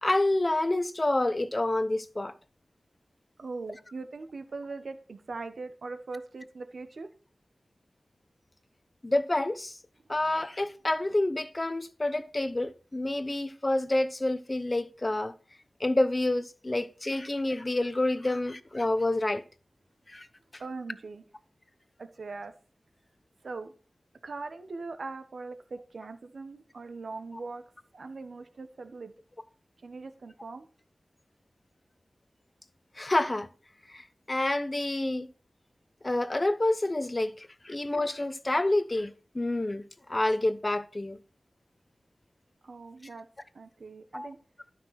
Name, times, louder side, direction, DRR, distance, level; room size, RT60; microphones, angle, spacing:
voice 1, 0.0-2.3 9.0-9.8 10.1-15.3 15.8-19.4 20.1-20.3 33.0-33.5 33.9-35.3 36.0-39.8 40.1-41.2 44.1-44.3, left 2 dB, 30° left, 0.9 m, -28 dB
voice 2, 3.4-7.1 20.6-21.2 22.0-22.5 23.4-23.7 24.2-27.6 27.9-29.1 29.8-30.7 42.6-43.3 43.5-44.4, right 3 dB, 75° right, 1.1 m, -40 dB
12.0 x 5.9 x 5.8 m
wide cardioid pair, 85°, 0 cm